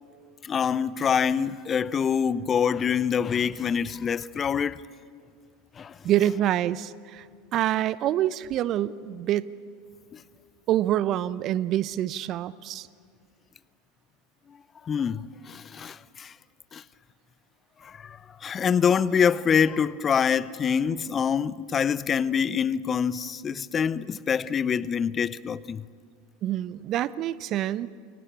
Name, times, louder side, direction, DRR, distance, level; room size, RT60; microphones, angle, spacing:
voice 1, 0.4-4.8 5.8-6.0 10.1-10.2 14.8-16.3 16.7-16.8 17.8-25.8, left 7 dB, 30° left, 0.7 m, -25 dB
voice 2, 6.0-7.3 7.5-9.5 10.7-12.9 26.4-27.9, right 12 dB, 45° right, 0.8 m, -26 dB
29.5 x 23.5 x 8.7 m
figure-of-eight pair, 80°, 0 cm